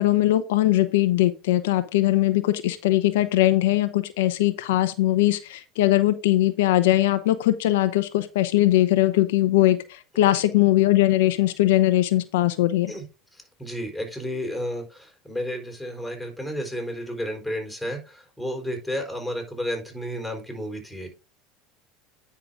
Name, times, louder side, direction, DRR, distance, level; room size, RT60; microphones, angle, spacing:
voice 1, 0.0-12.9, left 15 dB, 80° left, 0.8 m, -20 dB
voice 2, 13.3-21.1, equal, ahead, 4.5 m, -32 dB
9.6 x 5.8 x 3.7 m
hypercardioid pair, 95°, 0 cm